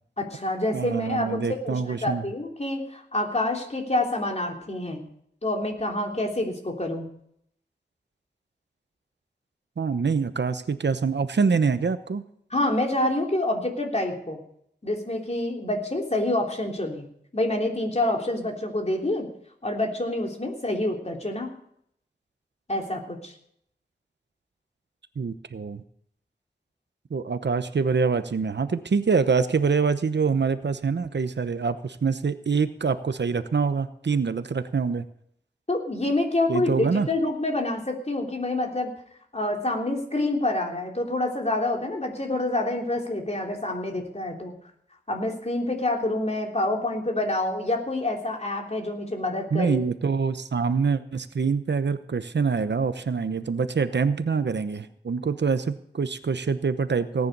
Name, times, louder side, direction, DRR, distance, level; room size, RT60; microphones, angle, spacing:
voice 1, 0.2-5.0 5.4-7.1 12.5-14.4 14.8-17.1 17.3-19.3 19.6-21.5 22.7-23.3 35.7-38.9 39.3-44.6 45.1-49.8, left 2 dB, 40° left, 1 dB, 3.4 m, -27 dB
voice 2, 0.7-2.3 9.8-12.2 25.2-25.8 27.1-35.0 36.5-37.1 49.5-57.3, right 5 dB, 85° right, 11 dB, 0.9 m, -25 dB
18.0 x 9.8 x 5.4 m, 0.68 s
wide cardioid pair, 60°, 18 cm